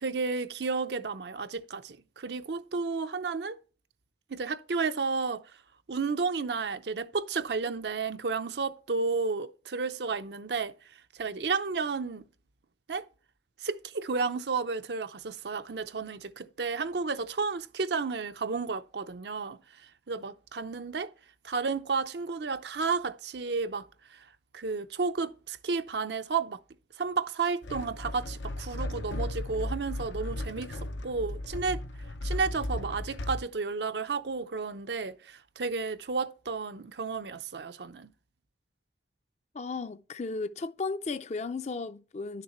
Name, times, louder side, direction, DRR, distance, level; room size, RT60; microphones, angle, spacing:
voice 1, 0.0-3.6 4.3-5.4 5.9-10.7 11.2-12.2 12.9-13.1 13.6-19.6 20.1-21.1 21.4-23.9 24.5-26.6 27.0-30.8 31.0-31.8 32.2-38.1, right 4 dB, 70° right, 0.6 m, -32 dB
sound 1, 27.6-33.4, left 1 dB, 85° left, 0.7 m, -36 dB
voice 2, 39.5-42.4, left 4 dB, 40° left, 0.5 m, -35 dB
11.5 x 6.7 x 3.1 m
head